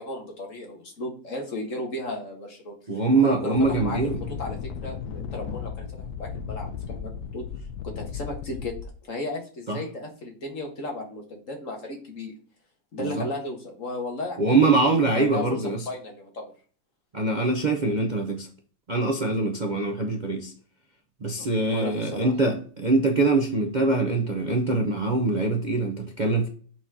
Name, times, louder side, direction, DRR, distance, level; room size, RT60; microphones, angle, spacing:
voice 1, 0.0-4.0 4.4-7.5 7.8-8.8 9.1-12.3 12.9-14.6 14.8-16.5 21.4-22.3, left 2 dB, 50° left, 1.9 m, -35 dB
voice 2, 2.9-4.2 9.7-9.8 13.0-13.2 14.4-15.8 17.1-18.5 18.9-20.5 21.2-26.5, right 3 dB, 35° right, 0.8 m, -23 dB
sound 1, 3.5-8.9, left 7 dB, 70° left, 1.2 m, -35 dB
6.1 x 4.3 x 6.1 m
omnidirectional pair, 1.8 m